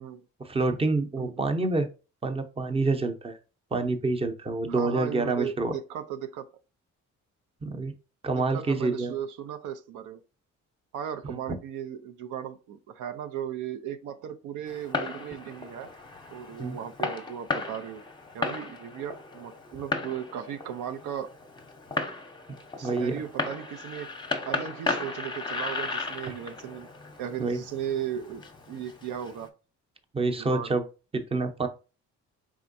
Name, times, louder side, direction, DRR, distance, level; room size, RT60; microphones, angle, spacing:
voice 1, 0.4-1.9 2.2-3.4 3.7-5.7 7.6-7.9 8.2-9.1 11.3-11.4 16.6-16.8 22.8-23.2 26.3-26.4 27.4-27.6 30.1-30.8 31.1-31.7, right 3 dB, 20° right, 0.7 m, -27 dB
voice 2, 1.2-1.7 4.7-6.5 8.3-10.2 10.9-15.9 16.3-18.0 18.3-21.3 22.8-24.1 24.5-26.9 27.2-29.5 30.4-30.7, right 9 dB, 85° right, 0.5 m, -36 dB
Fireworks, 14.7-29.5, left 3 dB, 15° left, 0.8 m, -35 dB
4.3 x 3.6 x 2.6 m
cardioid pair, 90°, 30 cm